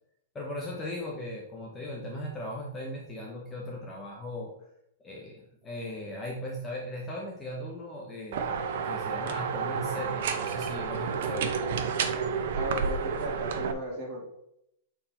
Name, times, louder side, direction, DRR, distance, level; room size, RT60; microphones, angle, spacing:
voice 1, 0.3-4.5 5.0-8.5 8.8-11.6, left 1 dB, 10° left, -2 dB, 0.9 m, -38 dB
sound 1, 8.3-13.7, right 6 dB, 55° right, 0.8 m, -30 dB
voice 2, 12.5-14.2, right 1 dB, 25° right, -3 dB, 2.5 m, -36 dB
7.3 x 4.6 x 4.3 m, 0.78 s
supercardioid pair, 170°, 0 cm